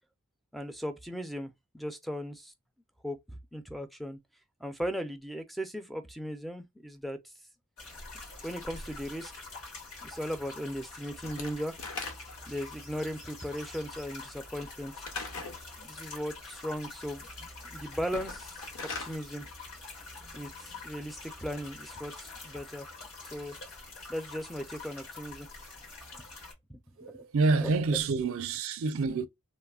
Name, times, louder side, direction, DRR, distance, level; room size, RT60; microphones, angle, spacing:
voice 1, 0.5-2.5 3.0-4.2 4.6-7.2 8.4-9.3 10.0-11.8 12.5-15.1 15.8-18.7 19.0-19.5 20.3-22.9 23.2-23.6 24.1-25.5 26.1-26.2 26.7-27.2 27.6-27.7, equal, ahead, 0.4 m, -37 dB
sound 1, 7.8-26.5, left 3 dB, 85° left, 1.6 m, -46 dB
Slam / Wood, 11.2-12.5 15.0-15.6 18.0-19.2, left 4 dB, 65° left, 0.7 m, -39 dB
voice 2, 27.0-29.3, right 3 dB, 65° right, 0.4 m, -28 dB
3.0 x 2.0 x 2.3 m
head